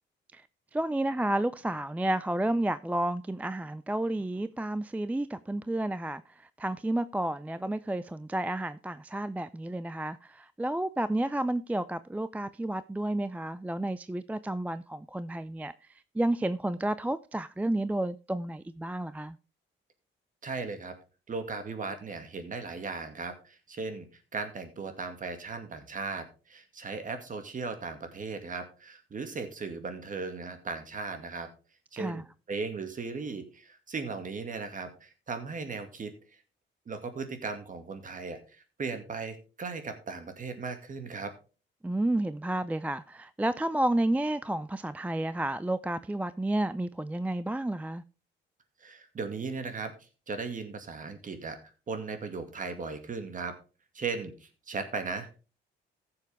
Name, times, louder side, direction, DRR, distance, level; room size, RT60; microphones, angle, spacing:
voice 1, 0.7-6.2 6.6-15.7 16.2-19.4 31.9-32.2 41.8-48.0, right 1 dB, 5° right, 0.4 m, -31 dB
voice 2, 20.4-20.9 21.3-31.5 31.9-36.1 36.9-41.4 48.8-51.6 51.9-53.5 53.9-55.3, right 4 dB, 40° right, 2.2 m, -37 dB
15.0 x 7.0 x 3.5 m
cardioid pair, 90°, 20 cm